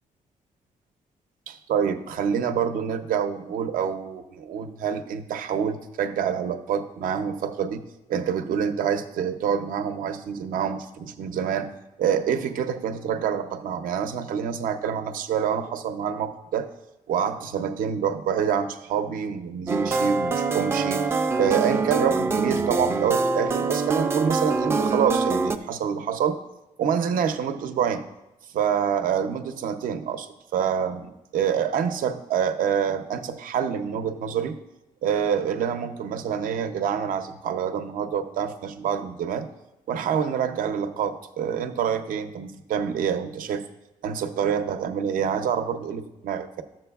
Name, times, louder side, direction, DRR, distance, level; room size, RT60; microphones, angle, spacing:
voice 1, 1.5-7.8 8.1-11.7 12.0-16.7 17.1-21.1 21.4-26.4 26.8-28.0 28.5-34.5 35.0-39.5 39.9-43.6 44.0-46.6, right 7 dB, 80° right, 8 dB, 0.6 m, -26 dB
sound 1, 19.7-25.6, right 4 dB, 15° right, 0.3 m, -24 dB
12.0 x 7.4 x 2.3 m, 0.96 s
wide cardioid pair, 170°, 14 cm